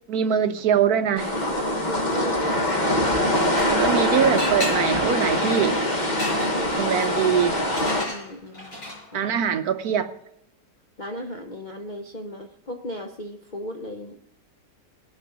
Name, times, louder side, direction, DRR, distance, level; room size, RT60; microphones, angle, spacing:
voice 1, 0.1-1.3 3.7-5.8 6.8-7.6 9.1-10.1, right 8 dB, 65° right, 10 dB, 1.1 m, -23 dB
sound 1, 1.2-8.0, left 1 dB, 30° left, 1.2 m, -23 dB
voice 2, 1.6-3.9 6.0-6.9 7.8-8.7 9.1-9.3 11.0-14.2, equal, 45° left, 1 dB, 0.6 m, -36 dB
sound 2, 3.4-4.0 4.4-9.2, left 1 dB, 65° left, 6.1 m, -35 dB
17.0 x 6.4 x 5.9 m, 0.81 s
omnidirectional pair, 1.9 m